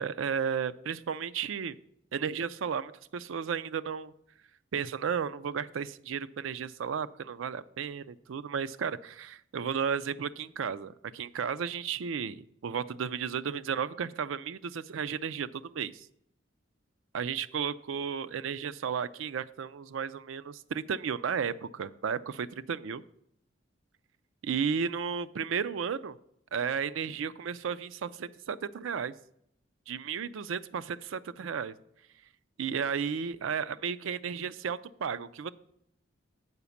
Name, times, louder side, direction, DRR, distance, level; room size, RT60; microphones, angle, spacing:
voice 1, 0.0-1.8 2.1-4.1 4.7-16.1 17.1-23.0 24.4-26.1 26.5-29.1 29.9-31.7 32.6-35.5, right 7 dB, 85° right, 14 dB, 0.4 m, -33 dB
8.1 x 5.0 x 7.1 m, 0.72 s
head